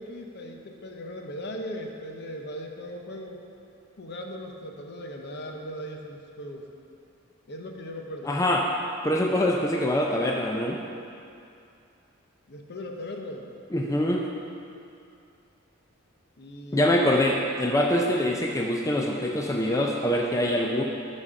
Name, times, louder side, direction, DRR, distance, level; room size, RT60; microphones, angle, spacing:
voice 1, 0.0-3.4 4.0-6.7 7.5-8.4 12.5-13.5 16.4-17.2 18.0-18.2, equal, 55° left, 2 dB, 0.8 m, -38 dB
voice 2, 8.3-8.6 9.0-10.8 13.7-14.3 16.7-20.8, left 1 dB, 15° left, 0 dB, 0.4 m, -24 dB
12.5 x 4.2 x 4.9 m, 2.6 s
head